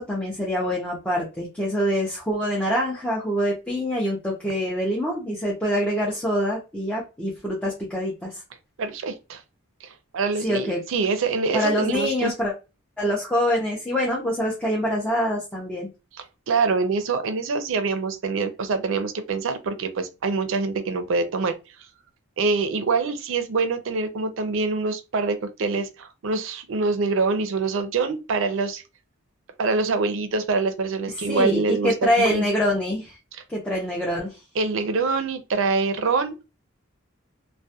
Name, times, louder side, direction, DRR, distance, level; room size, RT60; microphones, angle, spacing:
voice 1, 0.0-8.4 10.4-10.8 11.5-12.5 13.0-15.9 31.3-33.2 33.5-34.4, equal, 5° left, 0.5 m, -25 dB
voice 2, 8.8-9.4 9.8-12.3 16.5-21.6 22.4-28.8 29.6-32.5 34.6-36.4, right 4 dB, 65° right, 0.4 m, -25 dB
2.2 x 2.1 x 2.6 m
head